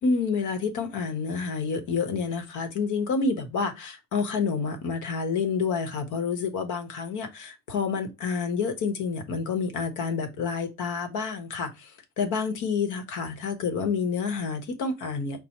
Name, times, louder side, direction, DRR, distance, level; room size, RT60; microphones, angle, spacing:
voice 1, 0.0-11.9 12.2-15.4, left 5 dB, 85° left, 0.9 m, -28 dB
4.6 x 2.0 x 4.1 m
cardioid pair, 90°, 30 cm